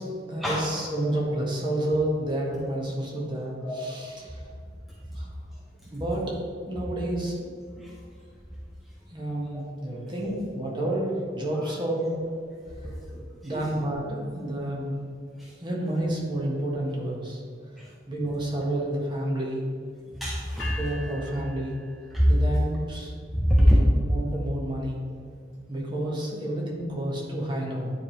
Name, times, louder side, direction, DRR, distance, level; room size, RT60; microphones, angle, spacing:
voice 1, 0.0-4.5 5.1-5.3 5.9-6.4 6.7-7.5 9.1-12.2 13.4-15.0 15.6-17.4 17.8-19.7 20.8-21.8 22.3-23.1 23.4-25.0 25.7-27.9, right 1 dB, 25° right, -3 dB, 1.3 m, -30 dB
voice 2, 12.8-13.7 15.4-15.5 17.8-17.9 20.2-20.8 22.1-22.3 23.3-23.8, equal, ahead, -5 dB, 0.6 m, -24 dB
sound 1, 20.6-22.7, left 2 dB, 75° left, 1.6 m, -42 dB
9.6 x 3.5 x 4.5 m, 2.2 s
head